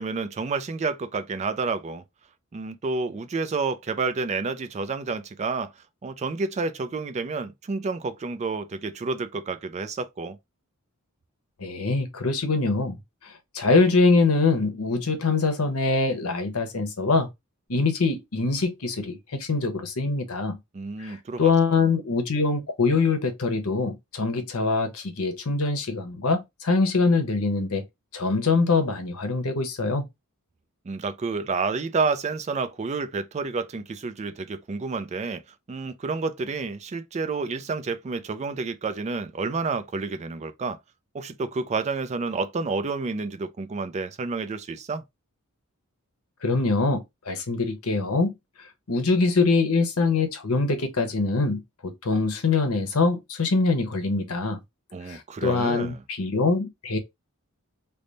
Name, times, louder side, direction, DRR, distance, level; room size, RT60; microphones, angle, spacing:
voice 1, 0.0-2.0 2.5-5.7 6.0-10.4 20.7-21.5 30.9-35.4 35.7-40.8 41.1-45.0 54.9-56.0, right 4 dB, 30° right, 0.4 m, -29 dB
voice 2, 11.6-13.0 13.2-17.3 17.7-20.6 21.0-27.8 28.1-30.1 46.4-48.3 48.9-54.6 55.0-57.0, left 3 dB, 75° left, 0.9 m, -24 dB
3.4 x 2.1 x 3.9 m
head